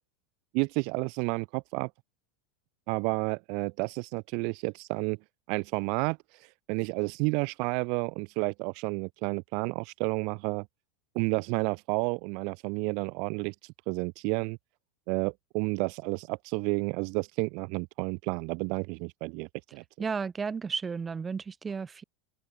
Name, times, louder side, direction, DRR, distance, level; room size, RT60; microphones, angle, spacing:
voice 1, 0.5-1.9 2.9-5.2 5.5-6.2 6.7-10.6 11.1-13.5 13.9-14.6 15.1-19.8, right 34 dB, 55° right, 0.7 m, -31 dB
voice 2, 20.0-22.0, right 5 dB, 20° right, 0.8 m, -33 dB
open air
figure-of-eight pair, 85°, 0 cm